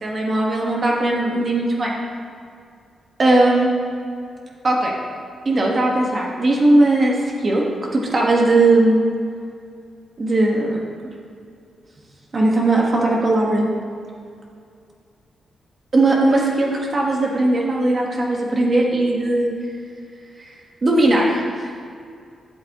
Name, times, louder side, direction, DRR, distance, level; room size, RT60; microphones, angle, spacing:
voice 1, 0.0-1.9 3.2-3.7 4.6-4.9 5.4-7.1 7.4-7.6 7.9-9.0 10.2-10.8 12.3-13.6 15.9-19.5 20.4-20.5 20.8-21.4, right 2 dB, 30° right, -2 dB, 1.4 m, -18 dB
12.0 x 7.7 x 3.0 m, 2.3 s
wide cardioid pair, 165°, 0 cm